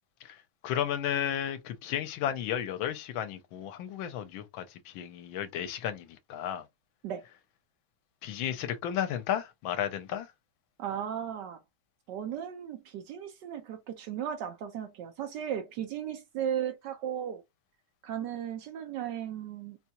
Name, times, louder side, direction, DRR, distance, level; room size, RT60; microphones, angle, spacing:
voice 1, 0.6-6.7 8.2-10.3, left 10 dB, 80° left, 1.4 m, -33 dB
voice 2, 10.8-11.6 12.1-17.4 18.0-19.8, right 9 dB, 70° right, 1.1 m, -36 dB
4.0 x 2.3 x 2.8 m
omnidirectional pair, 2.2 m